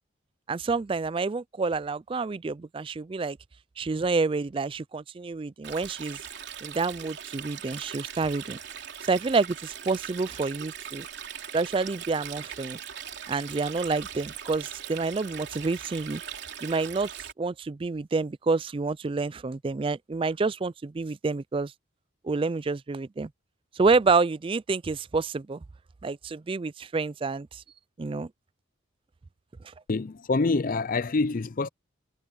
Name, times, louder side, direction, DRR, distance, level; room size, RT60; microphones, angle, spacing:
voice 1, 0.5-3.4 3.8-6.2 6.6-8.6 9.0-11.1 11.5-12.8 13.3-16.2 16.6-21.7 22.2-23.3 23.7-25.6 26.0-27.6 28.0-28.3, right 4 dB, 25° right, 0.3 m, -28 dB
Stream, 5.6-17.3, right 8 dB, 55° right, 3.7 m, -40 dB
voice 2, 29.9-31.7, left 3 dB, 40° left, 0.5 m, -26 dB
head